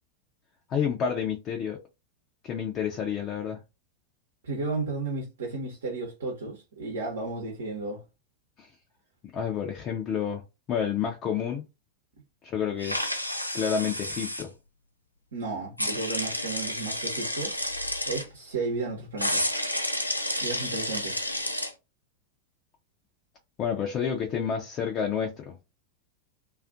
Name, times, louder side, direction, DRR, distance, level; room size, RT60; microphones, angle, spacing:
voice 1, 0.7-1.8 2.4-3.6 8.6-8.7 9.3-10.4 10.7-11.7 12.4-13.1 13.5-14.5 23.6-25.6, left 7 dB, 30° left, 0.5 m, -29 dB
voice 2, 4.4-8.0 15.3-17.5 18.1-19.5 20.4-21.2, right 3 dB, 65° right, 0.8 m, -33 dB
sound 1, 12.8-14.4 15.8-18.2 19.2-21.7, left 1 dB, 90° left, 0.4 m, -30 dB
2.4 x 2.4 x 2.4 m
figure-of-eight pair, 90°, 0 cm